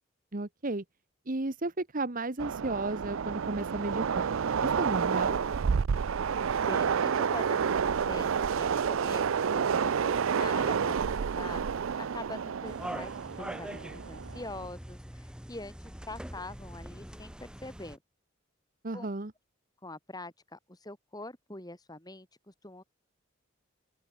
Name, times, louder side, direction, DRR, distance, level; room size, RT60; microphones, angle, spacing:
voice 1, 0.3-0.8 1.3-4.3 4.6-5.4 18.8-19.3, right 2 dB, 40° right, 1.2 m, -33 dB
Train, 2.4-14.7, right 6 dB, 70° right, 0.5 m, -29 dB
voice 2, 6.7-8.3 8.5-9.3 9.5-11.6 12.0-18.0 18.9-19.1 19.8-22.3 22.6-22.8, left 2 dB, 20° left, 3.4 m, -44 dB
sound 1, 12.6-18.0, equal, 5° right, 0.9 m, -43 dB
open air
head